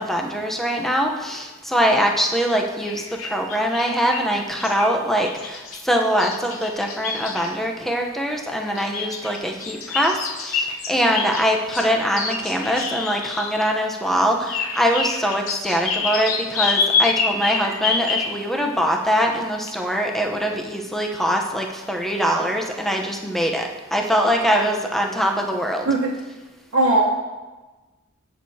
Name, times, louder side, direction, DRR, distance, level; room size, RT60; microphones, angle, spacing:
voice 1, 0.0-25.9, equal, ahead, 1 dB, 0.8 m, -23 dB
sound 1, 2.8-4.3 4.6-4.9 5.3-7.5 8.7-13.7 14.1-18.4 19.1-19.2 19.7-19.8, left 5 dB, 85° left, 0.8 m, -27 dB
voice 2, 25.9-26.1 26.7-27.0, right 2 dB, 80° right, -6 dB, 1.2 m, -18 dB
17.0 x 6.5 x 2.8 m, 1.2 s
head